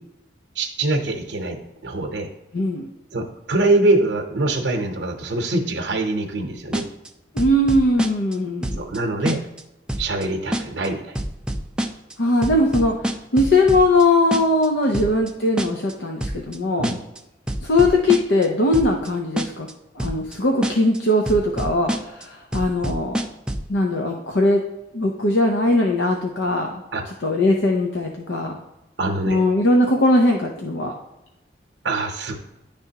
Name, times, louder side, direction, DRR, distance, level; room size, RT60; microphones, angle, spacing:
voice 1, 0.5-2.3 3.1-6.8 8.8-9.4 10.0-11.2 14.9-15.0 16.8-17.0 26.9-27.0 29.0-29.4 31.8-32.4, right 2 dB, 75° right, 2 dB, 0.8 m, -23 dB
voice 2, 2.5-2.9 7.3-8.9 12.2-12.9 13.3-16.9 17.6-19.7 20.0-23.2 23.7-24.6 24.9-28.6 29.3-30.9, left 1 dB, 80° left, 1 dB, 0.7 m, -20 dB
sound 1, 6.7-7.1 7.4-8.4 8.6-9.0 9.3-9.6 9.9-10.2 10.5-10.9 11.2-12.1 12.4-14.0 14.3-14.7 14.9-15.3 15.6-15.9 16.2-16.6 16.8-17.2 17.5-18.5 18.7-19.1 19.4-19.7 20.0-20.4 20.6-21.0 21.3-22.2 22.5-23.7, right 1 dB, 5° right, 0.3 m, -26 dB
10.0 x 3.4 x 2.8 m, 0.95 s
head